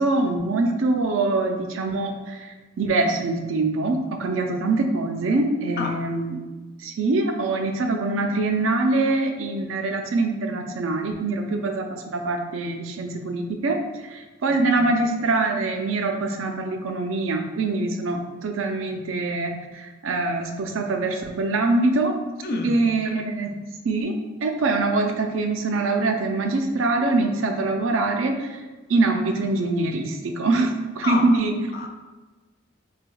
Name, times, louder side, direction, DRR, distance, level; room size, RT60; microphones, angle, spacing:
voice 1, 0.0-6.4 6.8-22.2 22.6-23.5 23.8-28.6 28.9-31.5, right 2 dB, 90° right, 4 dB, 0.5 m, -24 dB
voice 2, 22.4-22.8 31.0-31.3 31.7-31.9, left 3 dB, 50° left, 1 dB, 0.5 m, -28 dB
4.0 x 3.2 x 2.3 m, 1.2 s
head